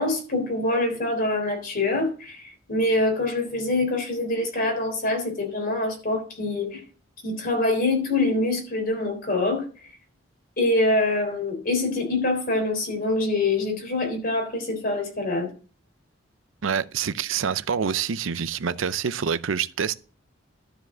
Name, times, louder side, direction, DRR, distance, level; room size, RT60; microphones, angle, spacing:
voice 1, 0.0-2.4 2.7-6.8 7.2-9.7 10.6-15.5, left 2 dB, 50° left, 3.8 m, -25 dB
voice 2, 16.6-20.0, right 7 dB, 80° right, 0.6 m, -26 dB
12.0 x 5.0 x 6.1 m
head